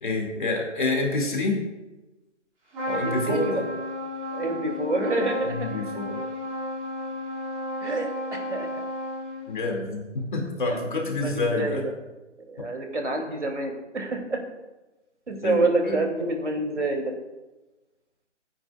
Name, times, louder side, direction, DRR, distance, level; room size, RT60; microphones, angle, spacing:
voice 1, 0.0-1.6 2.9-3.6 5.5-6.2 9.5-11.9 15.4-16.0, left 3 dB, 40° left, 2 dB, 2.5 m, -28 dB
Trumpet, 2.7-9.6, left 1 dB, 10° right, 2.5 m, -33 dB
voice 2, 3.0-3.6 4.3-5.8 7.8-8.7 10.6-10.8 11.2-11.9 12.5-14.4 15.3-17.1, right 2 dB, 70° right, 3 dB, 2.8 m, -27 dB
24.5 x 9.7 x 2.4 m, 1.1 s
figure-of-eight pair, 150°, 36 cm